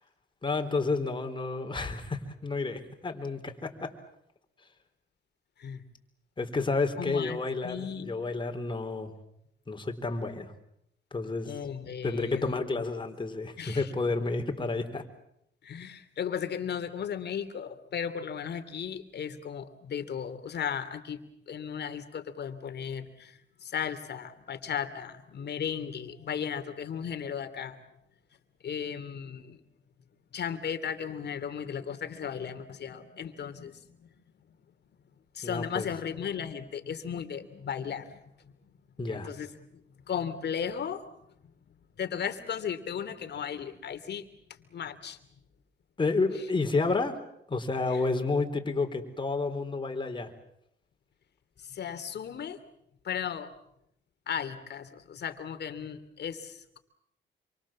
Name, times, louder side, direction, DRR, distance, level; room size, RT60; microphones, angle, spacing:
voice 1, 0.4-3.9 6.4-9.1 9.7-10.5 11.1-11.5 12.0-15.0 35.4-35.9 39.0-39.3 46.0-47.2 47.5-50.3, left 3 dB, 25° left, 5 dB, 4.1 m, -30 dB
voice 2, 7.0-7.4 7.6-8.1 11.4-12.6 13.6-13.9 15.6-21.2 21.5-27.8 28.6-29.6 30.3-34.1 35.3-38.5 39.1-39.8 40.1-41.1 42.0-44.3 44.7-45.2 47.9-48.0 51.6-52.6 53.0-53.5 54.3-56.8, left 8 dB, 55° left, 9 dB, 2.8 m, -36 dB
27.5 x 24.5 x 7.5 m, 0.77 s
cardioid pair, 90°, 20 cm